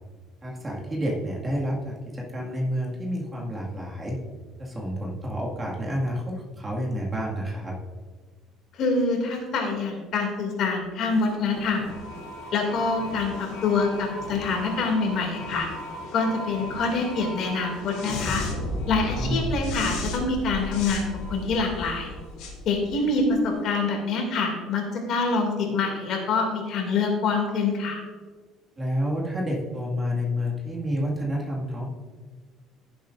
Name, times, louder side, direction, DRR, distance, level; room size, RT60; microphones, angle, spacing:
voice 1, 0.4-4.2 4.6-7.7 19.1-19.6 28.8-31.9, equal, 20° right, -3 dB, 2.0 m, -29 dB
voice 2, 8.8-11.8 12.5-15.7 16.1-18.4 18.9-22.1 22.7-28.0, left 4 dB, 50° left, 2 dB, 2.4 m, -25 dB
sound 1, 11.1-23.5, left 1 dB, 80° left, 3.0 m, -35 dB
15.5 x 7.7 x 2.6 m, 1.5 s
cardioid pair, 145°, 0 cm